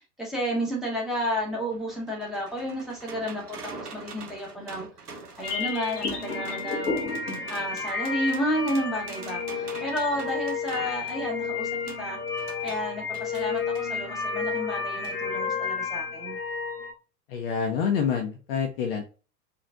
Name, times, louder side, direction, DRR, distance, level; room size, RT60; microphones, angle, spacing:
voice 1, 0.2-4.9 5.4-7.1 7.5-11.7 12.0-16.4, equal, ahead, -3 dB, 0.9 m, -31 dB
sound 1, 1.3-13.9 15.0-15.2 15.5-15.6, right 4 dB, 80° right, 0.9 m, -45 dB
sound 2, 5.4-16.9, left 5 dB, 80° left, 1.0 m, -31 dB
voice 2, 17.3-19.0, left 7 dB, 40° left, 3 dB, 0.5 m, -27 dB
3.8 x 2.4 x 2.3 m, 0.34 s
figure-of-eight pair, 95°, 46 cm